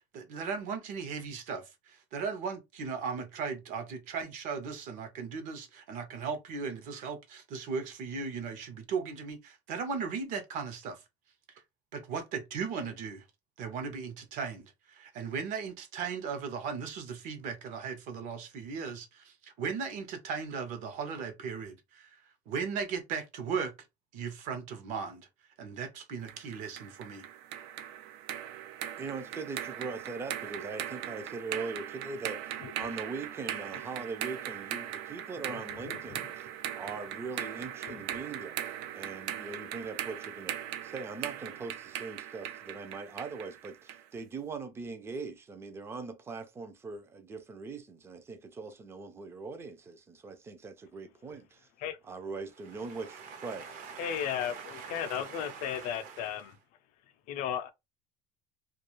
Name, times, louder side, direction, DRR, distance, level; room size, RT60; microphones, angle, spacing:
voice 1, 0.1-11.0 11.9-13.2 13.6-23.7 24.1-25.3 25.6-27.3 52.8-56.4, right 5 dB, 55° right, 0.7 m, -37 dB
sound 1, 26.3-44.1, right 11 dB, 90° right, 0.4 m, -40 dB
voice 2, 29.0-32.4 32.7-36.5 36.7-38.6 38.9-40.6 40.8-51.7 52.0-53.7, right 4 dB, 15° right, 0.4 m, -41 dB
voice 3, 35.5-36.2 37.9-38.0 51.8-52.0 54.0-56.6 57.3-57.7, left 9 dB, 60° left, 0.4 m, -35 dB
2.3 x 2.3 x 2.9 m
cardioid pair, 170°, 15 cm